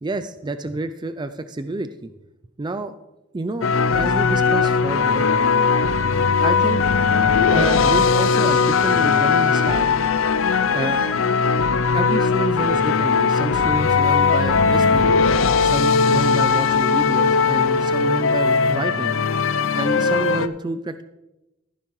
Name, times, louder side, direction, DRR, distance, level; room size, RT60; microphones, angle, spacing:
voice 1, 0.0-2.1 2.6-2.9 3.3-3.7 3.9-5.3 6.4-6.8 7.5-9.9 10.7-11.0 11.9-15.1 15.6-19.2 19.7-21.0, right 2 dB, 20° right, 10 dB, 0.4 m, -28 dB
sound 1, 3.6-20.5, left 5 dB, 75° left, 0.5 m, -19 dB
14.0 x 11.5 x 3.1 m, 0.98 s
head